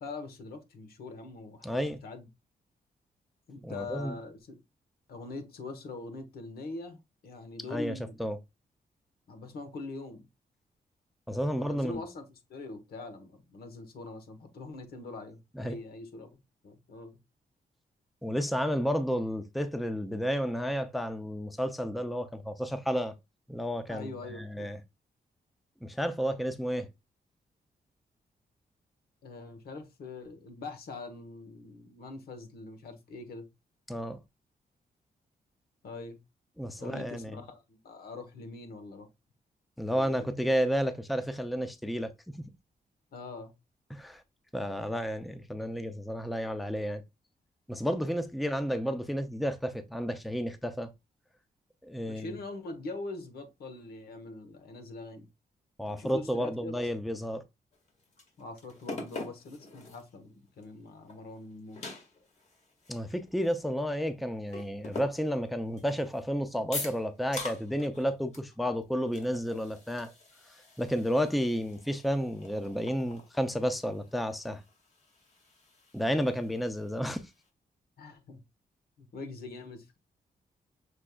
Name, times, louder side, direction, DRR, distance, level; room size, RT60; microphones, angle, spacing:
voice 1, 0.0-2.3 3.5-4.6 5.1-8.2 9.3-10.3 11.5-12.2 12.5-16.4 16.6-17.2 23.9-24.7 29.2-33.5 35.8-36.2 36.8-39.1 39.8-40.3 43.1-43.5 52.1-55.3 55.8-56.7 58.4-61.9 78.0-78.4 79.0-80.0, left 3 dB, 80° left, 1.1 m, -43 dB
voice 2, 1.6-2.0 3.6-4.2 7.7-7.9 8.2-8.4 11.3-12.0 15.6-15.7 18.2-23.1 23.5-24.8 25.8-26.9 33.9-34.2 36.6-37.4 39.8-42.1 43.9-44.2 44.5-47.0 47.7-50.9 51.8-52.3 55.8-57.4 62.9-70.1 70.8-74.6 75.9-77.2, equal, ahead, 0.4 m, -31 dB
sound 1, 57.7-60.1 60.6-60.7 61.1-64.1 64.5-66.2 66.7-68.1 68.3-68.5 68.8-77.5, left 2 dB, 45° left, 1.6 m, -45 dB
6.2 x 3.4 x 2.3 m
wide cardioid pair, 140°, 16 cm